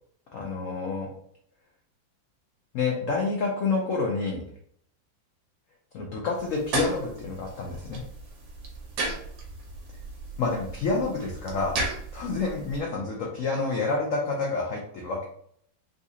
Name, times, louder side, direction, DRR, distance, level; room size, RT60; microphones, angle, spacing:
voice 1, 0.3-1.1 2.7-4.4 5.9-8.0 10.4-11.7 12.1-15.2, left 3 dB, 80° left, -1 dB, 0.7 m, -28 dB
sound 1, 6.4-12.8, right 2 dB, 85° right, 1.6 m, -35 dB
3.9 x 2.7 x 2.4 m, 0.67 s
omnidirectional pair, 2.0 m